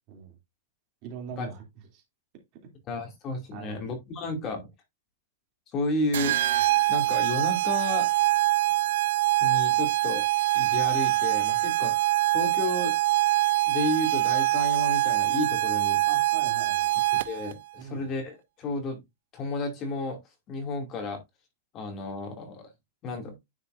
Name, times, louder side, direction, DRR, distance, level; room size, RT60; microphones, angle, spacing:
voice 1, 1.0-1.6 3.5-3.8 16.0-16.9 17.8-18.0, right 8 dB, 35° right, 2.7 m, -41 dB
voice 2, 2.9-4.7 5.7-6.4 6.9-8.1 9.4-10.3 10.5-12.0 12.3-13.0 13.7-16.0 17.1-19.0 19.3-20.2 20.5-21.2 21.7-22.7 23.0-23.3, left 2 dB, 25° left, 2.4 m, -32 dB
sound 1, 6.1-17.5, right 17 dB, 70° right, 0.6 m, -24 dB
9.9 x 5.8 x 2.5 m
supercardioid pair, 170°, 0 cm